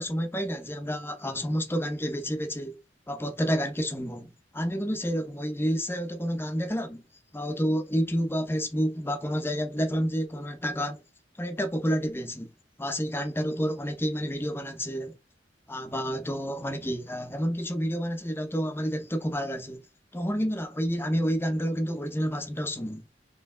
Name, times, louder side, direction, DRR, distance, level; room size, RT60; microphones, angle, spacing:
voice 1, 0.0-2.8 3.1-7.0 7.3-11.0 11.4-12.5 12.8-15.2 15.7-19.8 20.1-23.1, equal, 15° left, 0.8 m, -29 dB
4.3 x 3.3 x 3.8 m
head